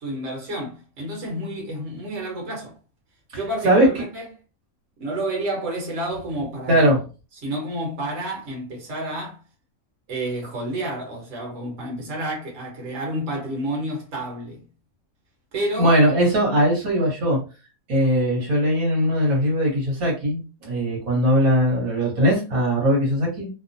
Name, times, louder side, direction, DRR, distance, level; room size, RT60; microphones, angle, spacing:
voice 1, 0.0-2.7 3.3-4.3 5.0-6.9 7.4-9.4 10.1-14.6 15.5-15.9, right 1 dB, 60° right, 1.4 m, -30 dB
voice 2, 6.7-7.0 15.8-17.4 17.9-23.5, equal, 75° right, 1.5 m, -20 dB
2.9 x 2.0 x 2.6 m
omnidirectional pair, 1.5 m